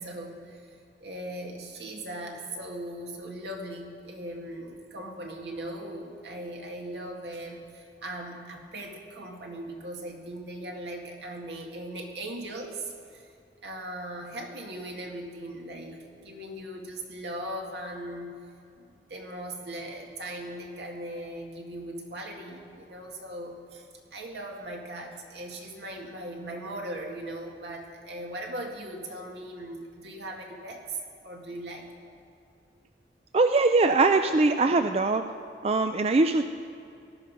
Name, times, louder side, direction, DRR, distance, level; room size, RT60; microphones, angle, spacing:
voice 1, 0.0-13.3 13.6-18.3 18.8-31.0 31.2-31.9 34.7-34.9, right 1 dB, 75° right, 1 dB, 2.1 m, -39 dB
voice 2, 33.3-35.2 35.6-36.4, right 3 dB, 35° right, 8 dB, 0.4 m, -22 dB
18.0 x 12.0 x 5.4 m, 2.6 s
head